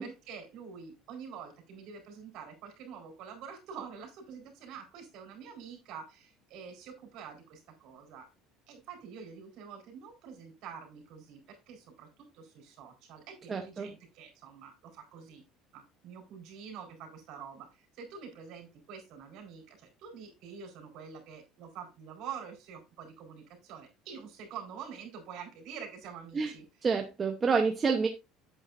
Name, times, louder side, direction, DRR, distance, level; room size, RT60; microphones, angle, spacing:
voice 1, 0.0-8.3 8.7-15.4 15.7-26.9, right 7 dB, 50° right, 4 dB, 4.2 m, -46 dB
voice 2, 13.5-13.9 26.3-26.5 26.8-28.1, right 5 dB, 20° right, 4 dB, 0.8 m, -28 dB
10.0 x 8.3 x 2.6 m, 0.25 s
cardioid pair, 175°, 0 cm